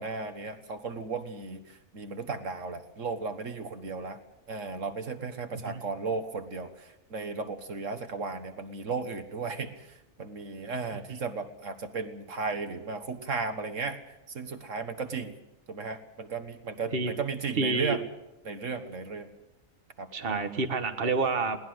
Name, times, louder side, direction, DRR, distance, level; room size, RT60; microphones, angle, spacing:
voice 1, 0.0-4.2 4.5-14.0 14.3-15.4 15.7-18.0 18.5-19.3 20.0-20.1, right 4 dB, 70° right, 8 dB, 1.8 m, -35 dB
voice 2, 17.6-18.0 20.1-21.6, right 4 dB, 45° right, 6 dB, 1.6 m, -28 dB
22.0 x 18.0 x 7.9 m, 0.95 s
omnidirectional pair, 1.3 m